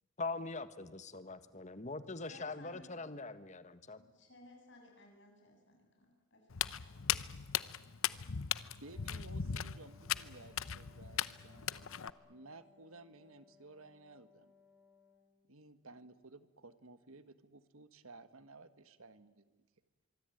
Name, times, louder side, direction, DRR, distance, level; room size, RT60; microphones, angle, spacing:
voice 1, 0.2-4.0, left 3 dB, 35° left, 12 dB, 1.4 m, -42 dB
voice 2, 2.2-2.8 4.0-7.0, left 2 dB, 55° left, 2 dB, 7.9 m, -59 dB
Walk footsteps, 6.5-12.1, left 9 dB, 75° left, 0.8 m, -38 dB
voice 3, 8.7-11.9 12.2-14.5 15.4-19.6, right 3 dB, 80° right, 12 dB, 1.7 m, -56 dB
Wind instrument woodwind instrument, 8.8-15.6, left 5 dB, 5° left, 5.0 m, -67 dB
25.0 x 23.5 x 9.3 m, 1.3 s
head